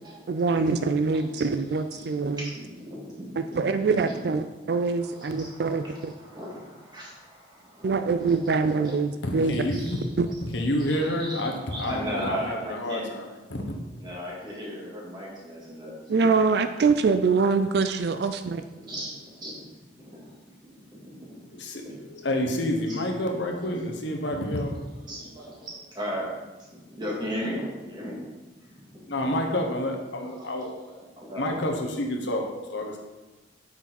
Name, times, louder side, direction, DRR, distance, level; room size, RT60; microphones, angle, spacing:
voice 1, 0.3-2.5 3.4-6.1 7.8-9.6 10.2-10.3 16.1-18.6, right 4 dB, 60° right, 9 dB, 0.4 m, -24 dB
voice 2, 1.9-3.2 3.5-4.2 4.9-9.0 9.3-10.1 10.4-10.5 10.8-13.2 13.9-16.5 18.7-19.6 19.9-20.3 20.9-21.4 21.8-22.1 22.4-22.5 22.9-23.0 25.0-26.3 26.9-28.2 28.7-29.1 30.2-31.7, equal, 25° right, -5 dB, 2.3 m, -37 dB
voice 3, 9.2-10.0 10.4-13.8 21.5-24.8 29.1-30.7 31.4-33.0, left 1 dB, 75° left, 2 dB, 1.2 m, -29 dB
8.8 x 5.9 x 4.1 m, 1.1 s
head